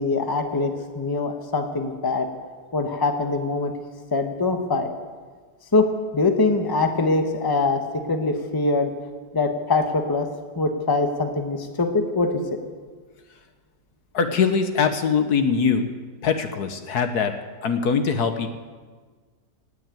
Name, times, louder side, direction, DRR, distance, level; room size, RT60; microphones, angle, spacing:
voice 1, 0.0-2.3 2.7-3.7 4.1-4.9 5.7-5.9 6.1-8.9 9.3-10.3 10.5-12.3, left 3 dB, 15° left, 6 dB, 1.0 m, -23 dB
voice 2, 14.1-15.9 16.2-18.5, left 6 dB, 65° left, 8 dB, 1.4 m, -22 dB
18.0 x 8.2 x 9.1 m, 1.5 s
omnidirectional pair, 1.9 m